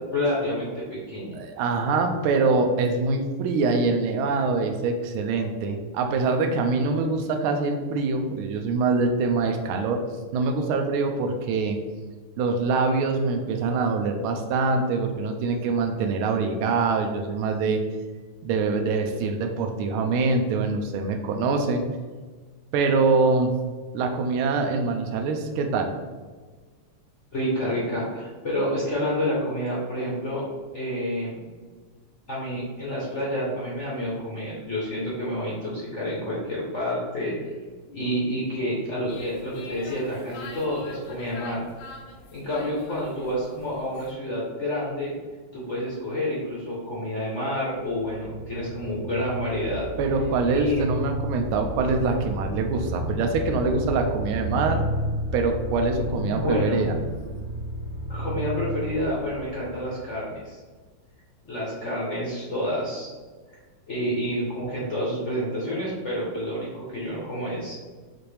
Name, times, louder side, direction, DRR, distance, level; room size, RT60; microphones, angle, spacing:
voice 1, 0.1-1.4 27.3-30.4 30.7-31.4 32.3-37.5 37.9-41.6 42.3-45.1 45.5-49.9 50.5-50.8 56.3-56.8 58.1-60.6 61.5-63.1 63.9-67.8, equal, 50° left, -6 dB, 0.9 m, -29 dB
voice 2, 1.3-10.0 10.3-11.8 12.4-17.8 18.4-21.8 22.7-23.5 23.9-25.9 50.0-54.8 55.3-57.0, right 4 dB, 80° right, 4 dB, 1.4 m, -24 dB
sound 1, 39.1-44.1, left 4 dB, 85° left, 1.5 m, -44 dB
sound 2, 47.8-60.4, equal, 25° right, 1.4 m, -32 dB
5.8 x 2.5 x 3.3 m, 1.4 s
omnidirectional pair, 2.4 m